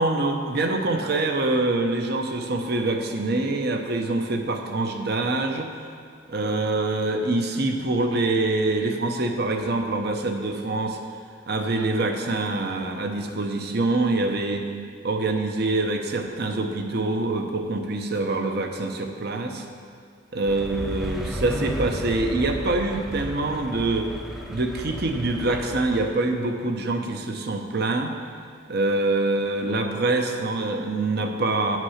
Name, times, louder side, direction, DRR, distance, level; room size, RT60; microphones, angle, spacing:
voice 1, 0.0-5.7 6.3-11.0 11.5-14.7 15.0-19.6 20.3-24.1 24.5-28.1 28.7-31.8, right 2 dB, 50° right, 4 dB, 0.8 m, -25 dB
sound 1, 20.5-26.1, equal, ahead, 0.5 m, -34 dB
10.0 x 6.1 x 5.7 m, 2.3 s
head